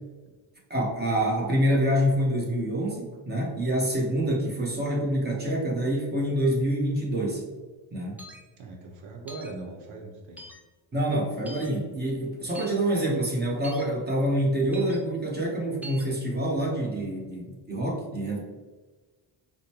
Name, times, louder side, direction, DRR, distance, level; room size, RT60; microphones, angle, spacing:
voice 1, 0.7-7.4 7.9-8.2 10.9-18.4, right 1 dB, 20° right, -2 dB, 1.1 m, -26 dB
sound 1, 8.2-8.4 9.3-9.5 10.4-10.6 11.5-11.7 12.5-12.7 13.6-13.8 14.7-15.0 15.8-16.1, right 1 dB, 5° right, 0.5 m, -42 dB
voice 2, 8.6-10.4, right 3 dB, 85° right, 0 dB, 0.9 m, -40 dB
5.0 x 2.2 x 2.9 m, 1.3 s
cardioid pair, 100°, 47 cm